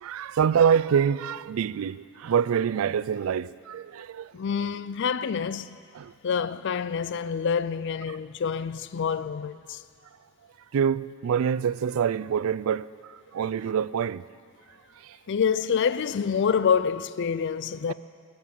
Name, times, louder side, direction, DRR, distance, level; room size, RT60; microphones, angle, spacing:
voice 1, 0.0-4.3 6.0-6.1 10.7-12.9 13.3-14.2 17.9-18.0, right 7 dB, 75° right, 0.3 m, -25 dB
voice 2, 4.3-5.8 6.2-9.8 15.3-17.9, left 6 dB, 55° left, 0.4 m, -27 dB
14.0 x 11.0 x 7.6 m
head